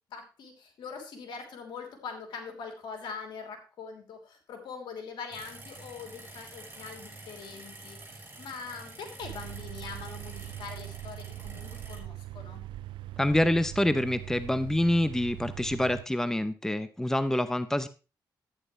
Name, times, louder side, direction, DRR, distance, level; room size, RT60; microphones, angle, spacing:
voice 1, 0.1-12.6, left 5 dB, 75° left, 4 dB, 3.2 m, -43 dB
sound 1, 5.3-12.0, right 2 dB, 25° right, 6.1 m, -48 dB
sound 2, 9.2-16.0, right 15 dB, 85° right, 0.4 m, -41 dB
voice 2, 13.2-17.9, left 1 dB, 5° left, 13 dB, 0.7 m, -26 dB
11.5 x 9.6 x 3.2 m, 0.32 s
cardioid pair, 70°, 8 cm